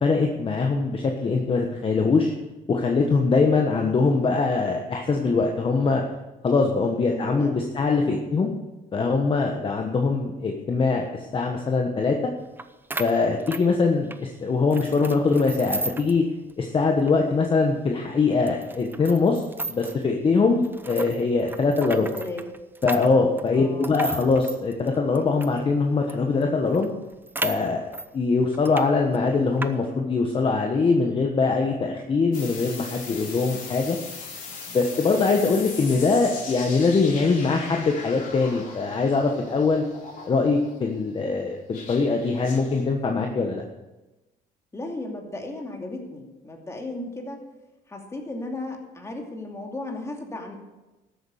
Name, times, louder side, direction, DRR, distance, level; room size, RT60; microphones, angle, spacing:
voice 1, 0.0-2.3 2.7-6.0 6.4-8.5 8.9-12.1 13.0-16.2 16.6-19.4 19.7-22.1 22.8-26.9 27.4-34.0 34.7-39.8 40.2-43.6, left 4 dB, 30° left, 2 dB, 1.4 m, -22 dB
voice 2, 7.1-7.9 22.1-22.5 23.5-24.0 44.7-47.4 47.9-50.6, left 2 dB, 15° left, 1 dB, 2.7 m, -35 dB
sound 1, 12.6-12.7 12.9-14.2 14.7-16.2 16.5-16.6 17.0-17.1 17.7-17.8 18.5-20.0 20.6-25.6 26.1-26.2 26.4-26.5 26.7-28.1 28.5-28.9 29.1-29.7, right 2 dB, 10° right, 0.7 m, -34 dB
sound 2, 32.3-40.7 41.7-42.8, left 4 dB, 55° left, 3.6 m, -39 dB
13.5 x 8.4 x 6.6 m, 1.1 s
cardioid pair, 110°, 17 cm